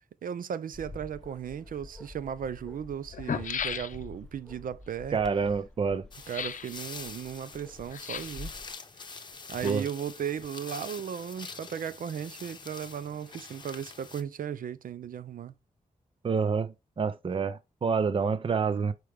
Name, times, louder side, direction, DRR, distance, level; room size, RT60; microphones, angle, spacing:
voice 1, 0.2-5.2 6.3-8.5 9.5-15.5, right 8 dB, 85° right, 0.6 m, -36 dB
Bark, 0.7-8.7, left 2 dB, 5° left, 0.8 m, -48 dB
sound 1, 1.8-1.9 2.7-2.8 3.0-4.3 6.2-6.7 7.9-8.5 9.3-10.1 10.4-10.5, left 8 dB, 70° left, 0.6 m, -36 dB
voice 2, 5.1-6.1 9.6-9.9 16.2-18.9, right 5 dB, 40° right, 0.6 m, -28 dB
sound 2, 6.1-14.2, left 4 dB, 35° left, 0.8 m, -45 dB
6.4 x 4.6 x 3.4 m
wide cardioid pair, 165°, 14 cm